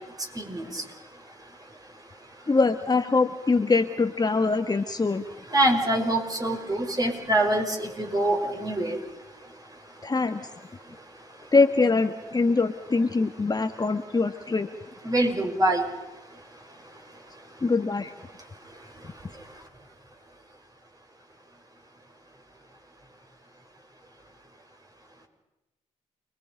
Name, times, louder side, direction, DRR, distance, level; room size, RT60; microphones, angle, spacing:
voice 1, 0.4-0.8 5.5-9.0 15.0-15.9, right 1 dB, 25° right, 3 dB, 5.7 m, -24 dB
voice 2, 2.5-5.2 10.0-10.5 11.5-14.7 17.6-18.1, left 3 dB, 30° left, 7 dB, 1.5 m, -23 dB
29.5 x 21.5 x 5.3 m, 0.99 s
hypercardioid pair, 50°, 14 cm